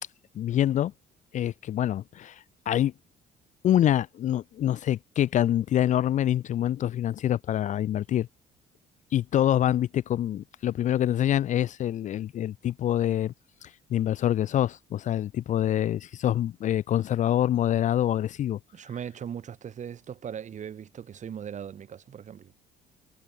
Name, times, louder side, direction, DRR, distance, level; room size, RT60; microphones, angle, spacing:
voice 1, 0.4-0.9 1.3-2.9 3.6-8.3 9.1-13.3 13.6-18.6, left 11 dB, 45° left, 0.4 m, -26 dB
voice 2, 18.7-22.5, right 8 dB, 45° right, 3.2 m, -39 dB
cardioid pair, 110°, 17 cm